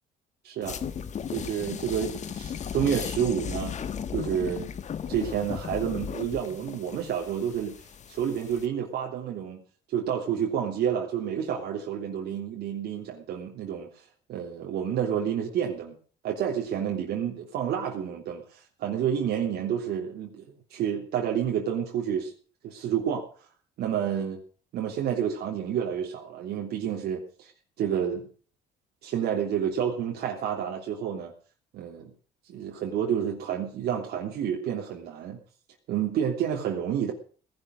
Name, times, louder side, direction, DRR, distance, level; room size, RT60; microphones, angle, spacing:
voice 1, 0.4-0.8 1.3-3.7 4.1-4.7 5.1-7.7 8.1-9.6 9.9-15.9 16.2-22.3 22.6-23.3 23.8-24.4 24.7-27.5 27.8-28.2 29.0-31.3 31.7-32.1 32.5-35.4 35.9-37.1, right 8 dB, 70° right, 0 dB, 3.2 m, -29 dB
sound 1, 0.6-8.7, left 7 dB, 45° left, 1.6 m, -36 dB
18.0 x 11.5 x 6.2 m, 0.42 s
cardioid pair, 110°, 17 cm